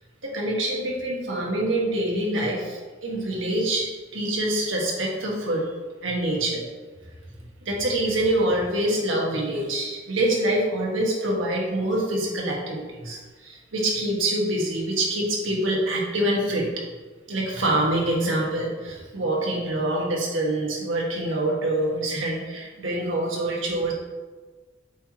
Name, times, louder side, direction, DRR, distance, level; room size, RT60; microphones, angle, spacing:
voice 1, 0.2-5.7 6.0-6.6 7.6-16.7 17.3-23.9, right 1 dB, 80° right, -2 dB, 1.5 m, -25 dB
8.0 x 4.6 x 2.9 m, 1.3 s
head